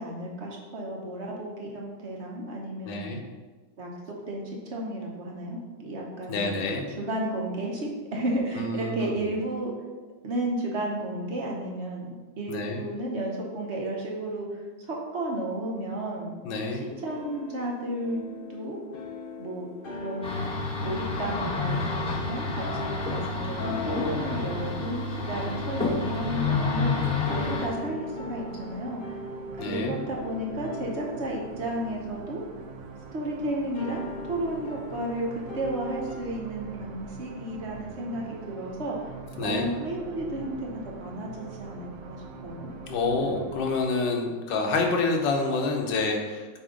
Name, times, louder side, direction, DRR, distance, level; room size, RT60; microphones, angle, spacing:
voice 1, 0.0-3.1 3.8-6.6 7.0-9.7 10.2-12.1 12.4-16.4 16.7-18.2 18.5-18.8 19.3-19.7 20.0-20.4 20.8-29.1 29.7-32.4 33.1-39.0 39.4-42.7, right 1 dB, 45° right, -2 dB, 1.0 m, -33 dB
voice 2, 2.9-3.2 6.3-6.8 8.5-9.1 12.5-12.8 16.4-16.8 29.6-29.9 39.4-39.7 42.9-46.5, left 3 dB, 85° left, 2 dB, 1.5 m, -27 dB
sound 1, 16.7-33.1 33.7-36.2, left 3 dB, 65° left, 0.5 m, -40 dB
sound 2, 20.2-27.7, left 3 dB, 5° left, 1.0 m, -29 dB
sound 3, 26.0-43.8, right 5 dB, 90° right, 0.6 m, -43 dB
7.1 x 2.8 x 5.0 m, 1.3 s
omnidirectional pair, 1.9 m